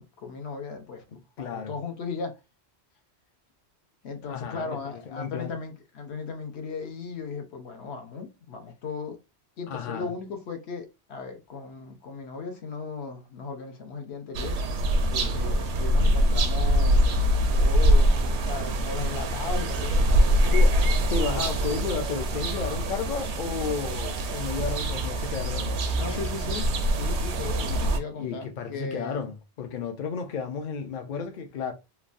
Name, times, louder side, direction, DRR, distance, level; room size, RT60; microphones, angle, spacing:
voice 1, 0.0-2.4 4.0-9.2 9.6-14.6 15.3-20.9 21.3-21.6 26.0-29.2, left 4 dB, 80° left, 1.0 m, -37 dB
voice 2, 1.4-1.7 4.2-5.5 9.7-10.1 15.1-15.3 20.5-26.2 27.6-27.9 28.2-31.7, left 6 dB, 55° left, 0.6 m, -33 dB
sound 1, 14.3-28.0, equal, 85° right, 0.9 m, -24 dB
3.2 x 2.2 x 2.4 m
omnidirectional pair, 1.1 m